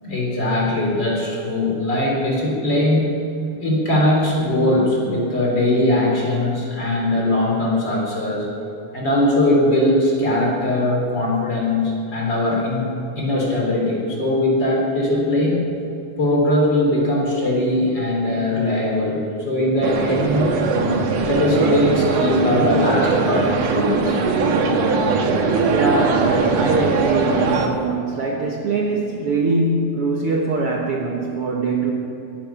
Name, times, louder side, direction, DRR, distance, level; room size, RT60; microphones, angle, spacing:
voice 1, 0.0-3.2 3.6-8.5 8.9-12.9 13.2-15.6 16.2-20.5 21.1-24.2, left 1 dB, 35° left, -3 dB, 4.3 m, -20 dB
sound 1, 19.8-27.7, right 4 dB, 85° right, 2.9 m, -20 dB
voice 2, 25.7-31.9, right 3 dB, 55° right, -1 dB, 1.8 m, -22 dB
22.0 x 9.1 x 5.8 m, 3.0 s
omnidirectional pair, 3.6 m